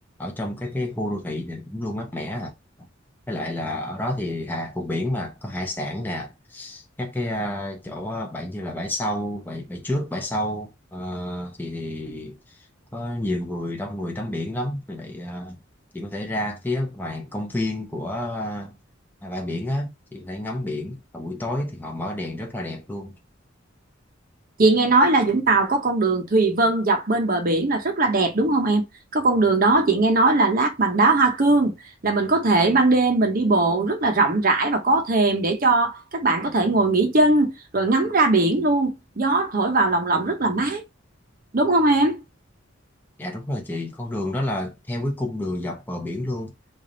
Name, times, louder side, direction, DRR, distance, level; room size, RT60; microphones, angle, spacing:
voice 1, 0.2-2.5 2.8-2.9 3.3-12.6 12.9-15.6 15.9-18.8 19.2-23.2 43.2-46.5, left 1 dB, 10° left, 0.6 m, -30 dB
voice 2, 24.6-28.9 29.1-31.7 32.0-40.8 41.5-42.2, right 2 dB, 45° right, 0.8 m, -20 dB
3.3 x 2.5 x 3.8 m
head